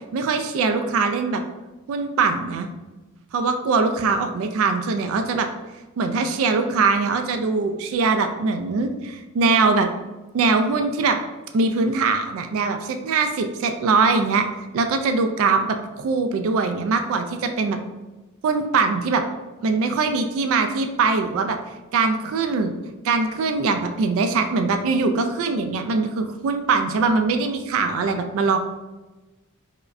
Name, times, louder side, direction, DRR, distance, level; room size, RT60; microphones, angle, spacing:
voice 1, 0.1-1.4 1.9-2.7 3.3-5.5 6.0-9.9 10.3-11.2 11.5-14.5 14.7-17.8 18.4-19.2 19.6-21.6 21.9-22.7 23.0-28.6, right 4 dB, 65° right, 7 dB, 0.3 m, -22 dB
4.7 x 2.1 x 2.5 m, 1.1 s
head